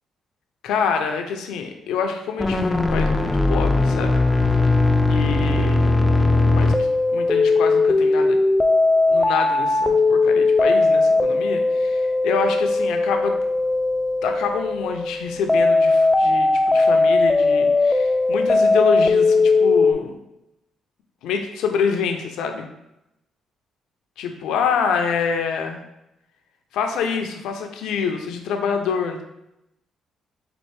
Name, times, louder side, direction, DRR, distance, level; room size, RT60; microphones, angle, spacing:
voice 1, 0.6-4.1 5.1-6.7 7.1-8.4 9.1-13.3 14.2-20.2 21.2-22.7 24.2-25.8 26.7-29.2, left 6 dB, 85° left, 5 dB, 0.4 m, -26 dB
sound 1, 2.4-19.9, left 3 dB, 15° left, 0.3 m, -18 dB
4.3 x 2.5 x 3.2 m, 0.86 s
cardioid pair, 90°, 0 cm